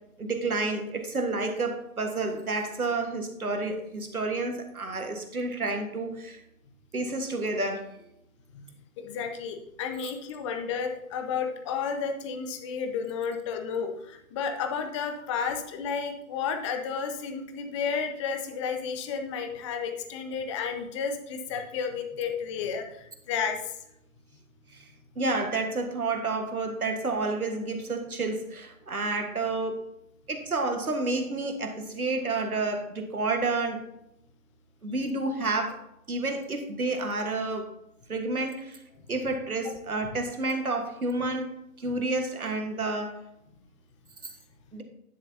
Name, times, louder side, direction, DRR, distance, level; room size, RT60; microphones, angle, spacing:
voice 1, 0.2-6.4 6.9-7.8 24.7-24.9 25.1-29.8 30.3-33.8 34.8-35.8 36.1-37.6 38.1-38.8 39.1-41.5 41.8-43.2 44.7-44.8, right 3 dB, 85° right, 5 dB, 1.6 m, -30 dB
voice 2, 8.5-23.8 39.6-39.8, left 6 dB, 20° left, 6 dB, 0.7 m, -32 dB
10.5 x 6.9 x 2.8 m, 0.82 s
figure-of-eight pair, 130°, 42 cm